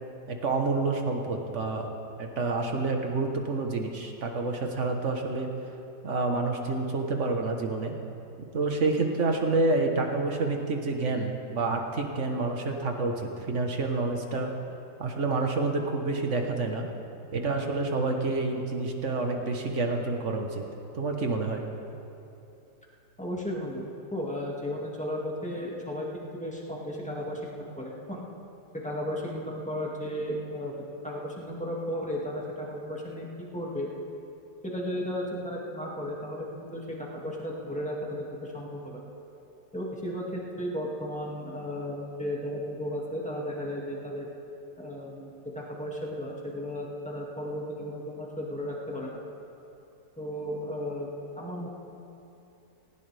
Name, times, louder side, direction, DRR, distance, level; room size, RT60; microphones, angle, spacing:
voice 1, 0.3-1.9 2.2-5.5 6.0-7.9 8.5-14.5 15.0-16.9 17.3-20.6 20.9-21.6, right 3 dB, 45° right, 3 dB, 1.5 m, -28 dB
voice 2, 23.2-28.3 28.8-30.7 31.0-33.3 33.5-33.9 34.6-39.1 39.7-44.3 44.8-45.3 45.6-49.2 50.2-51.1 51.4-51.7, equal, 5° left, -4 dB, 2.0 m, -34 dB
19.0 x 17.0 x 3.4 m, 2.8 s
omnidirectional pair, 1.8 m